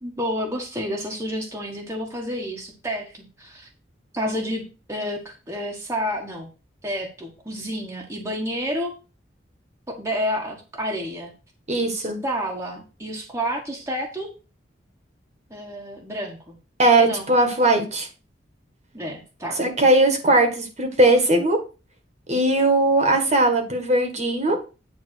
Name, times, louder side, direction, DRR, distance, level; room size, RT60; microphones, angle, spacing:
voice 1, 0.0-3.7 4.1-6.5 6.8-8.9 9.9-11.3 11.9-14.3 15.5-16.6 17.0-17.3 18.9-19.6, equal, 15° right, -1 dB, 1.6 m, -30 dB
voice 2, 11.7-12.2 16.8-18.1 19.6-21.6 22.3-24.6, right 2 dB, 35° right, 5 dB, 1.7 m, -19 dB
9.4 x 3.7 x 6.5 m, 0.32 s
head